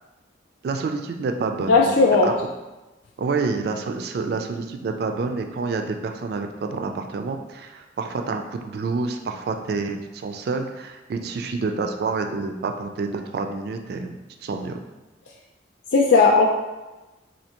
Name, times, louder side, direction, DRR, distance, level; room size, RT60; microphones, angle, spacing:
voice 1, 0.6-1.9 2.2-2.3 3.2-14.2 14.4-14.8, right 4 dB, 55° right, 5 dB, 0.3 m, -28 dB
voice 2, 1.7-2.3 15.9-16.5, left 4 dB, 80° left, -1 dB, 0.4 m, -16 dB
4.3 x 2.7 x 2.9 m, 1.1 s
head